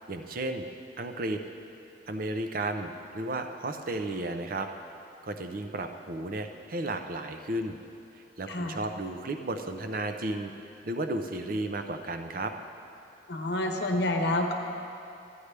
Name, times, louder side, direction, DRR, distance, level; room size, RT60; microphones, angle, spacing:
voice 1, 0.1-0.7 1.0-1.4 2.1-4.7 5.2-7.8 8.1-10.5 10.8-12.5, right 2 dB, 50° right, 6 dB, 0.6 m, -33 dB
voice 2, 8.5-8.8 13.3-14.5, left 1 dB, 65° left, 3 dB, 0.9 m, -28 dB
13.0 x 9.5 x 3.3 m, 2.6 s
head